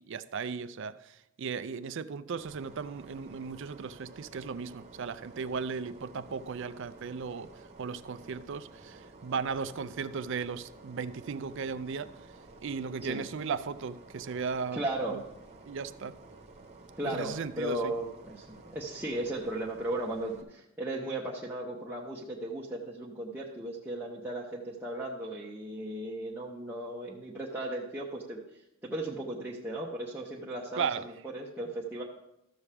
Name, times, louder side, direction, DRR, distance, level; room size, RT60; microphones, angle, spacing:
voice 1, 0.0-12.3 12.6-14.8 15.1-15.2 15.7-16.2 17.0-17.9 30.8-31.1, right 5 dB, 60° right, 0.4 m, -36 dB
sound 1, 2.4-20.4, right 3 dB, 30° right, 1.1 m, -52 dB
voice 2, 14.7-15.2 17.0-18.5 18.7-28.4 28.8-32.0, right 1 dB, 10° right, 0.8 m, -36 dB
13.5 x 7.0 x 3.4 m
head